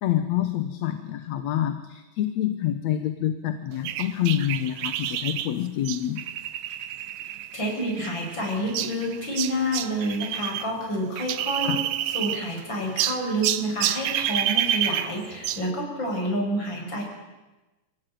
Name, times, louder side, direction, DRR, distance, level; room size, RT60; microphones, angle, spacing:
voice 1, 0.0-6.2 11.6-11.8, left 11 dB, 65° left, 9 dB, 2.1 m, -27 dB
sound 1, 3.8-10.7 10.9-12.6 13.0-15.7, right 11 dB, 70° right, 2.3 m, -29 dB
voice 2, 7.5-11.8 12.1-17.0, equal, 35° left, 0 dB, 7.0 m, -28 dB
25.0 x 17.0 x 9.2 m, 1.1 s
omnidirectional pair, 3.9 m